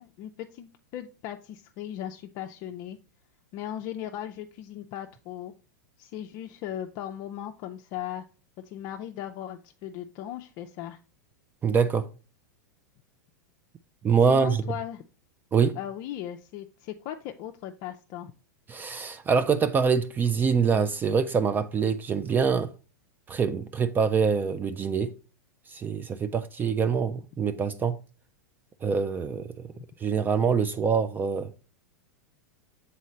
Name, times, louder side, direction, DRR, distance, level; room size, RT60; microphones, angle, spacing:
voice 1, 0.0-3.0 3.5-5.5 6.0-8.2 8.6-11.0 14.3-15.0 15.8-18.3 29.8-29.9, left 11 dB, 45° left, 0.4 m, -38 dB
voice 2, 11.6-12.1 14.0-14.6 15.5-15.8 18.7-22.7 23.3-25.1 25.7-28.0 28.8-29.5 30.0-31.5, right 6 dB, 20° right, 0.3 m, -25 dB
6.3 x 4.1 x 4.1 m
hypercardioid pair, 105°, 10 cm